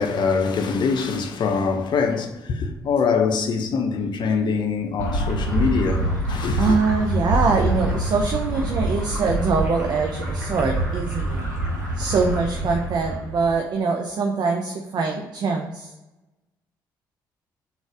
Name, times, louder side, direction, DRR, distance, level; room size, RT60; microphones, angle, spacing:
voice 1, 0.0-6.7, left 5 dB, 50° left, 0.6 m, -23 dB
sound 1, 5.0-13.6, right 1 dB, 90° right, 0.7 m, -26 dB
voice 2, 6.6-11.4 12.0-15.9, right 4 dB, 45° right, 0.5 m, -23 dB
3.9 x 2.4 x 4.6 m
figure-of-eight pair, 45°, 10 cm